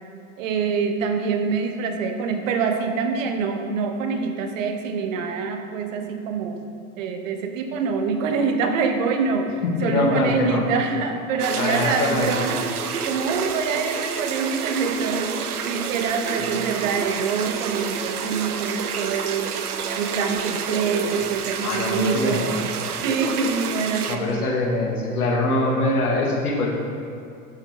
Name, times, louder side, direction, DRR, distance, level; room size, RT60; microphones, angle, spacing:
voice 1, 0.4-6.6 7.0-19.6 20.0-22.5 23.0-24.5, right 5 dB, 60° right, 5 dB, 1.1 m, -25 dB
voice 2, 9.6-10.6 11.6-12.3 21.6-22.6 24.1-26.7, left 2 dB, 80° left, -1 dB, 1.7 m, -23 dB
sound 1, 11.4-24.2, right 7 dB, 90° right, 0.6 m, -29 dB
11.0 x 6.1 x 3.5 m, 2.4 s
hypercardioid pair, 95°, 44 cm